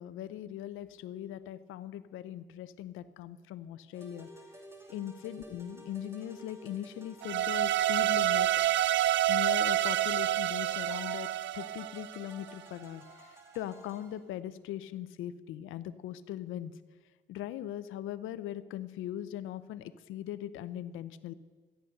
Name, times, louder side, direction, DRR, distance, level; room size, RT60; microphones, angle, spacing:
voice 1, 0.0-4.3 4.9-8.5 9.3-16.7 17.3-21.3, left 11 dB, 85° left, 13 dB, 0.6 m, -40 dB
sound 1, 3.9-14.2, right 1 dB, 15° right, 2.5 m, -52 dB
sound 2, 7.2-12.4, right 13 dB, 70° right, 0.5 m, -28 dB
13.5 x 10.0 x 6.6 m, 1.5 s
cardioid pair, 90°, 20 cm